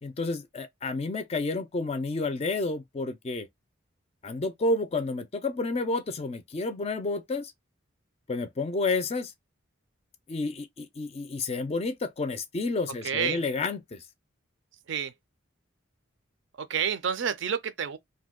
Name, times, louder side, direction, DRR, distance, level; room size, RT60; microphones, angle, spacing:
voice 1, 0.0-3.5 4.2-7.5 8.3-9.3 10.3-14.0, left 3 dB, 30° left, 0.3 m, -30 dB
voice 2, 13.0-13.4 14.9-15.1 16.6-18.0, right 7 dB, 65° right, 0.4 m, -29 dB
2.6 x 2.2 x 3.5 m
head